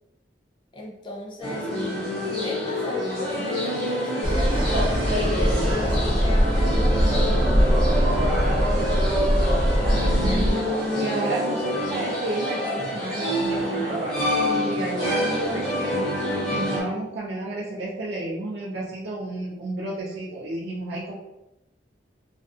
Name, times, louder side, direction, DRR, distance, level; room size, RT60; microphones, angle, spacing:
voice 1, 0.7-1.7 2.2-7.4 10.0-10.4, left 1 dB, 25° left, -1 dB, 0.4 m, -35 dB
sound 1, 1.4-16.8, equal, ahead, 0.9 m, -27 dB
sound 2, 4.2-10.5, equal, 25° right, 0.6 m, -22 dB
voice 2, 10.2-10.6 10.9-14.2 14.5-16.0 16.5-21.1, right 2 dB, 80° right, -6 dB, 0.5 m, -31 dB
2.5 x 2.3 x 2.4 m, 0.92 s
head